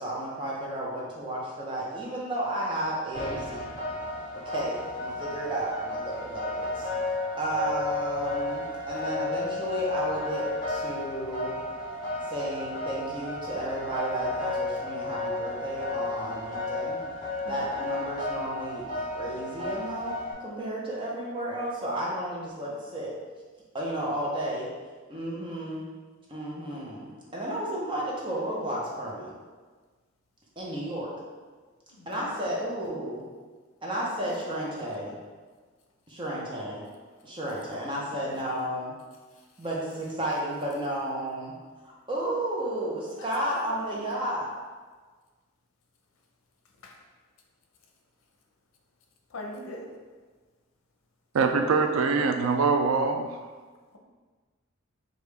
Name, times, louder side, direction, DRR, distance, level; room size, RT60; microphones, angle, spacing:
voice 1, 0.0-3.7 4.4-6.9 7.4-11.6 12.3-17.0 17.5-23.1 23.7-24.7 25.1-25.8 26.3-29.3 30.6-31.1 32.1-33.2 33.8-35.2 36.1-36.8 37.2-38.9 39.6-41.5 41.8-44.4, right 1 dB, 25° right, -5 dB, 0.8 m, -32 dB
sound 1, 3.1-20.3, left 2 dB, 20° left, 1.0 m, -33 dB
voice 2, 31.9-32.3 38.3-38.4 40.2-40.4 43.2-44.1 46.8-47.0 49.3-49.9 53.9-54.0, left 2 dB, 85° left, 1 dB, 0.6 m, -42 dB
voice 3, 51.3-53.4, right 4 dB, 90° right, 6 dB, 0.4 m, -24 dB
5.0 x 2.5 x 3.3 m, 1.4 s
head